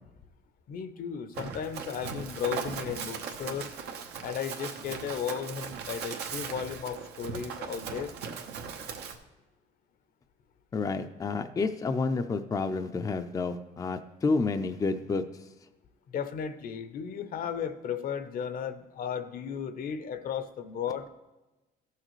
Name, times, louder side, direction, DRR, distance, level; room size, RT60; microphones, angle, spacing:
voice 1, 0.7-3.7 4.2-8.1 16.1-21.1, left 8 dB, 55° left, 11 dB, 0.7 m, -35 dB
Run, 1.3-9.2, right 6 dB, 80° right, 1.0 m, -38 dB
voice 2, 10.7-15.5, left 4 dB, 20° left, 7 dB, 0.4 m, -30 dB
14.5 x 6.5 x 3.1 m, 1.1 s
cardioid pair, 110°, 17 cm